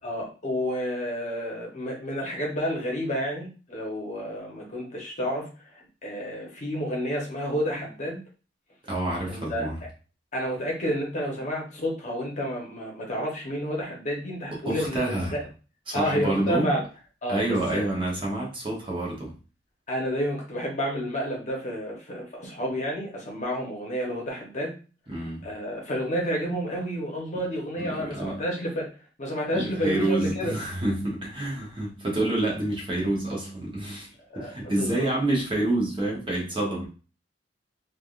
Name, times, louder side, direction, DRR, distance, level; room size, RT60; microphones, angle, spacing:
voice 1, 0.0-8.2 9.3-9.6 10.3-15.4 15.9-16.8 17.2-17.9 19.9-24.7 25.4-28.9 29.2-30.6 34.3-35.1, equal, 40° left, -1 dB, 0.9 m, -30 dB
voice 2, 8.8-9.8 14.6-15.4 15.9-16.7 17.3-19.3 25.1-25.5 27.8-28.4 29.5-36.9, right 1 dB, 25° right, -2 dB, 0.8 m, -28 dB
3.3 x 2.3 x 2.4 m, 0.36 s
head